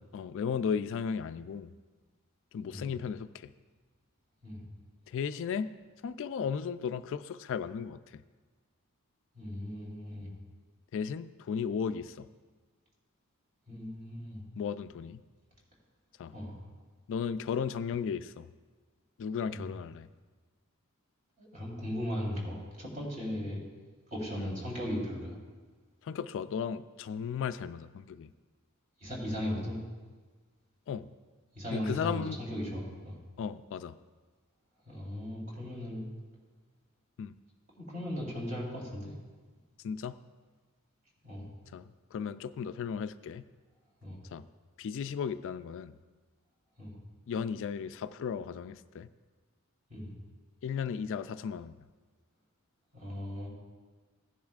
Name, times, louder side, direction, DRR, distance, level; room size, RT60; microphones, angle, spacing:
voice 1, 0.1-1.7 2.5-3.5 5.1-5.7 6.0-8.2 10.9-12.3 14.6-15.2 16.2-16.3 17.1-18.5 19.2-20.1 24.4-24.5 26.0-28.3 30.9-31.1 31.7-32.4 33.4-34.0 37.2-37.4 39.8-40.2 41.7-43.4 44.3-44.4 44.8-45.9 47.3-49.1 50.6-51.8, left 6 dB, 60° left, 12 dB, 0.3 m, -35 dB
voice 2, 9.4-10.3 13.7-14.4 16.3-16.6 19.5-19.7 21.4-23.6 24.1-25.4 29.0-29.8 31.6-33.2 34.9-36.0 37.8-39.1 41.2-41.5 44.0-44.2 46.8-46.9 49.9-50.1 52.9-53.5, equal, 40° right, -4 dB, 3.5 m, -37 dB
16.0 x 10.5 x 2.4 m, 1.4 s
head